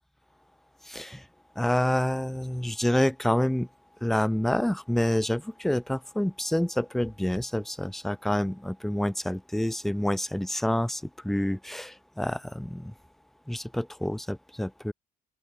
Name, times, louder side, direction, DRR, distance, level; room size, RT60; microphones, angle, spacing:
voice 1, 0.9-1.2 1.6-3.7 4.0-12.9 13.5-14.9, left 1 dB, ahead, 0.7 m, -28 dB
open air
cardioid pair, 110°, 17 cm